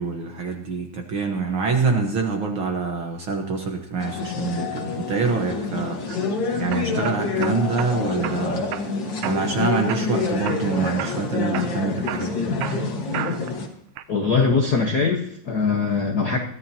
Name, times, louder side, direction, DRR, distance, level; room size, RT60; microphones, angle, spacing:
voice 1, 0.0-6.0 6.6-8.6 9.2-12.5, right 4 dB, 55° right, 3 dB, 1.5 m, -25 dB
sound 1, 4.0-13.7, left 4 dB, 45° left, 1.8 m, -27 dB
sound 2, 5.8-6.2 6.7-7.9 8.2-8.9 9.2-9.6 9.9-10.7 11.0-11.2 11.5-13.6 14.0-14.5, right 12 dB, 75° right, 2.0 m, -33 dB
voice 2, 14.1-16.4, left 4 dB, 70° left, 1 dB, 0.9 m, -21 dB
22.0 x 13.5 x 2.8 m, 0.69 s
omnidirectional pair, 3.6 m